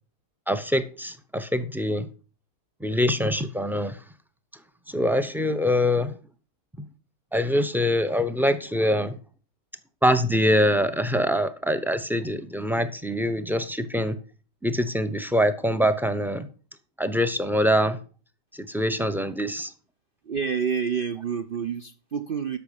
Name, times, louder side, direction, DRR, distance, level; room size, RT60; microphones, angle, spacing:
voice 1, 0.5-2.1 2.8-4.0 4.9-6.2 7.3-9.2 10.0-14.2 14.6-16.5 17.0-18.0 18.5-19.7, equal, ahead, 0.4 m, -24 dB
voice 2, 20.2-22.6, right 6 dB, 55° right, 0.6 m, -28 dB
13.0 x 5.9 x 5.3 m
omnidirectional pair, 1.6 m